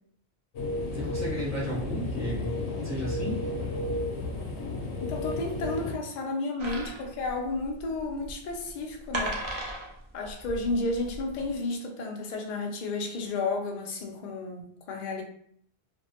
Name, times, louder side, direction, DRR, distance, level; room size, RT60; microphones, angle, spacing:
sound 1, 0.5-5.9, left 2 dB, 80° left, 0.8 m, -32 dB
voice 1, 0.9-3.4, right 1 dB, 15° right, -7 dB, 0.7 m, -34 dB
voice 2, 5.0-9.4 10.1-15.2, left 3 dB, 55° left, 2 dB, 0.5 m, -32 dB
sound 2, 6.6-11.5, right 1 dB, 50° right, 0.3 m, -37 dB
2.5 x 2.0 x 2.7 m, 0.64 s
omnidirectional pair, 1.1 m